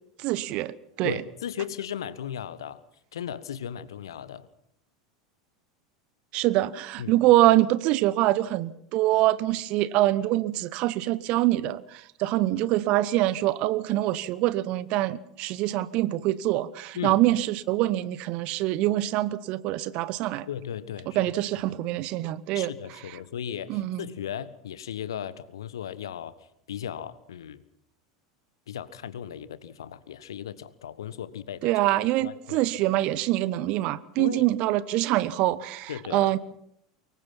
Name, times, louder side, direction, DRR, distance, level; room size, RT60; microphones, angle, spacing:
voice 1, 0.2-1.2 6.3-20.5 21.1-22.7 23.7-24.1 31.6-36.4, right 16 dB, 45° right, 18 dB, 1.0 m, -25 dB
voice 2, 1.0-2.8 3.1-4.5 7.0-7.2 16.9-17.2 20.5-21.2 21.6-21.7 22.5-26.3 26.7-27.6 28.7-31.7 32.2-32.7 34.2-34.4 35.9-36.3, left 9 dB, 65° left, 16 dB, 1.3 m, -36 dB
24.5 x 22.0 x 5.8 m, 0.74 s
figure-of-eight pair, 80°, 3 cm